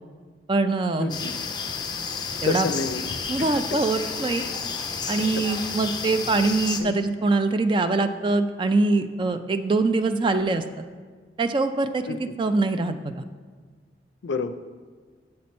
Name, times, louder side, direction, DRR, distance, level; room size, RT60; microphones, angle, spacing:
voice 1, 0.5-1.1 2.4-2.7 3.3-4.4 5.1-10.6 11.4-13.2, right 3 dB, 30° right, 9 dB, 0.3 m, -23 dB
voice 2, 1.0-1.3 2.4-3.0 3.4-3.8 6.8-7.0 12.1-12.3 14.2-14.5, left 4 dB, 85° left, 11 dB, 0.4 m, -29 dB
sound 1, 1.1-6.8, left 5 dB, 25° left, 0.5 m, -31 dB
7.6 x 5.9 x 4.2 m, 1.5 s
head